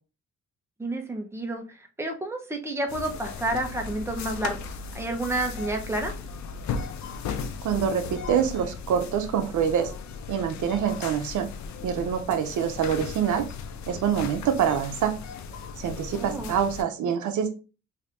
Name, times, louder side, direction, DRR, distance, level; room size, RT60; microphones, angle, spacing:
voice 1, 0.8-1.6 2.0-4.6 4.9-6.1 16.1-16.5, right 2 dB, 10° right, 4 dB, 0.7 m, -30 dB
sound 1, 2.9-16.8, left 5 dB, 70° left, 0.5 m, -37 dB
voice 2, 7.6-9.9 10.3-11.5 11.8-13.5 13.9-15.1 15.8-17.5, right 8 dB, 80° right, 6 dB, 0.6 m, -25 dB
2.7 x 2.6 x 3.3 m, 0.33 s
cardioid pair, 85°, 29 cm